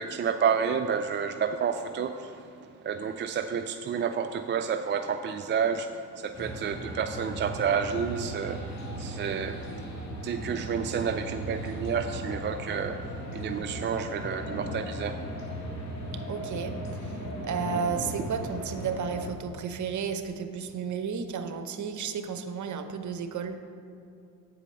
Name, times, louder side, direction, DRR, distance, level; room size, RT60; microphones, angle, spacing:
voice 1, 0.0-9.9 10.2-15.4, right 7 dB, 30° right, 7 dB, 0.4 m, -30 dB
sound 1, 6.3-19.3, equal, 40° left, 1.9 m, -37 dB
voice 2, 16.1-23.6, right 6 dB, 45° right, 8 dB, 0.9 m, -33 dB
8.4 x 4.9 x 6.6 m, 2.6 s
supercardioid pair, 65°, 41 cm